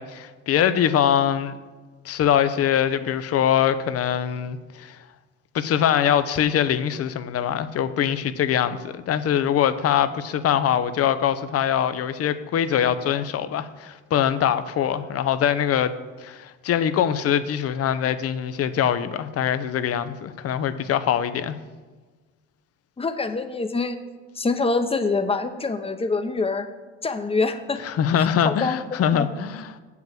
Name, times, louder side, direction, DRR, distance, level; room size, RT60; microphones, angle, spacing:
voice 1, 0.0-1.6 2.0-5.0 5.5-21.6 27.8-29.7, left 9 dB, 50° left, 12 dB, 0.7 m, -23 dB
voice 2, 23.0-24.0 24.3-26.7 27.0-27.8 28.1-28.8 29.1-29.3, left 3 dB, 20° left, 9 dB, 0.9 m, -25 dB
7.5 x 5.8 x 7.5 m, 1.3 s
supercardioid pair, 80°, 31 cm